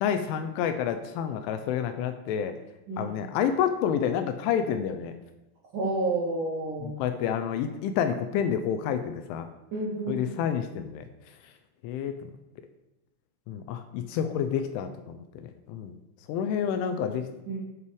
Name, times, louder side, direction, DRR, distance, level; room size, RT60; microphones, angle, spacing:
voice 1, 0.0-2.6 3.0-5.1 6.8-9.5 10.1-11.5 11.8-12.3 13.5-16.0 16.3-17.3, left 8 dB, 85° left, 8 dB, 2.9 m, -29 dB
voice 2, 5.7-6.9 9.7-10.4 17.5-17.6, right 2 dB, 80° right, -4 dB, 1.8 m, -30 dB
8.4 x 5.5 x 4.7 m, 1.0 s
omnidirectional pair, 5.7 m